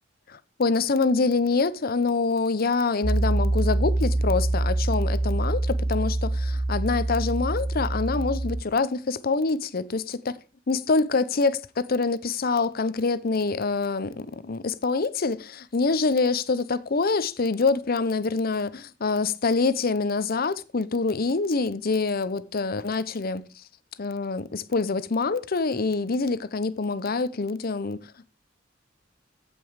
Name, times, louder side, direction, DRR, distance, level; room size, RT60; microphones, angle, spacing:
voice 1, 0.3-10.4 10.7-23.5 24.0-28.0, left 4 dB, 50° left, 0.7 m, -25 dB
Piano, 3.0-8.6, right 2 dB, 15° right, 0.8 m, -25 dB
15.0 x 5.4 x 4.7 m
head